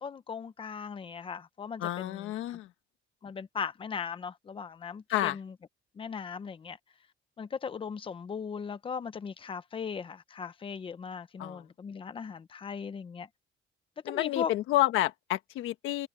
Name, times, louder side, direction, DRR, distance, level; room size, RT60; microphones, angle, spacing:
voice 1, 0.0-2.3 3.2-5.5 5.9-6.8 7.4-13.3 14.0-14.5, left 6 dB, 25° left, 1.0 m, -38 dB
voice 2, 1.8-2.7 5.1-5.4 11.4-11.6 14.1-16.1, left 15 dB, 70° left, 1.3 m, -29 dB
cardioid pair, 165°, 21 cm